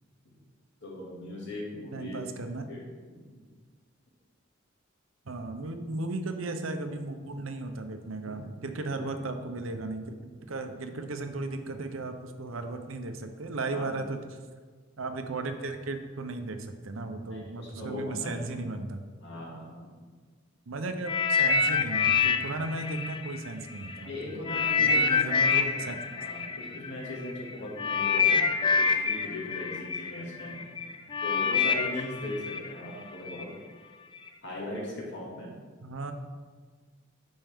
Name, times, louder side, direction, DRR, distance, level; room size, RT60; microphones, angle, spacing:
voice 1, 0.8-2.8 3.1-3.4 8.2-8.4 10.9-11.0 13.7-14.1 17.3-18.7 19.2-19.8 24.0-30.8 31.2-33.5 34.4-35.5, left 1 dB, 60° left, -4 dB, 2.2 m, -39 dB
voice 2, 1.9-2.7 5.2-10.2 10.5-14.2 15.0-19.0 20.7-24.3 24.8-26.0 35.8-36.1, right 2 dB, 75° right, 7 dB, 0.7 m, -35 dB
sound 1, 21.0-24.0 24.4-33.4 34.2-34.3, left 5 dB, 25° left, 0.3 m, -27 dB
8.9 x 5.4 x 3.6 m, 1.5 s
head